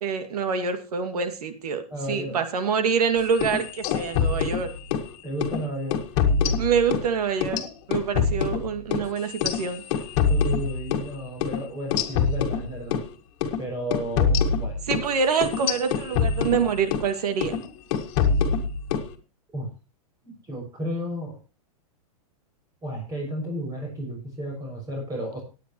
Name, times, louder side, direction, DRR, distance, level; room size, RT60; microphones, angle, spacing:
voice 1, 0.0-1.8 2.1-4.7 6.6-7.6 7.9-9.8 14.9-17.5, right 6 dB, 85° right, 8 dB, 2.3 m, -26 dB
voice 2, 1.9-2.4 5.2-6.0 10.3-13.0 13.6-14.8 19.5-19.7 20.2-21.4 22.8-25.4, equal, 20° right, 0 dB, 6.1 m, -33 dB
sound 1, 3.3-5.1 5.4-5.6 5.9-7.1 7.4-11.1 11.4-11.6 11.9-13.1 13.4-13.6 13.9-17.1 17.4-17.6 17.9-19.1, left 6 dB, 50° left, 2.0 m, -25 dB
18.5 x 9.3 x 3.0 m, 0.32 s
hypercardioid pair, 140°, 19 cm